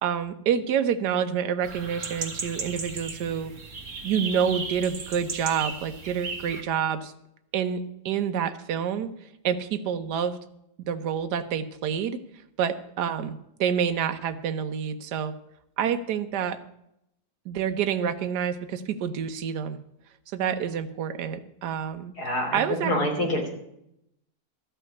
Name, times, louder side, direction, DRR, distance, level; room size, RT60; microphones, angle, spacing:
voice 1, 0.0-3.5 4.0-7.1 7.5-9.1 9.4-10.4 10.8-12.2 12.6-15.3 15.8-16.6 17.5-19.8 20.3-22.1 22.5-22.9, right 8 dB, 80° right, 9 dB, 1.4 m, -28 dB
sound 1, 1.6-6.6, right 4 dB, 50° right, 1.8 m, -36 dB
voice 2, 22.2-23.5, left 1 dB, 70° left, 0 dB, 3.7 m, -26 dB
13.5 x 5.7 x 9.5 m, 0.79 s
omnidirectional pair, 1.7 m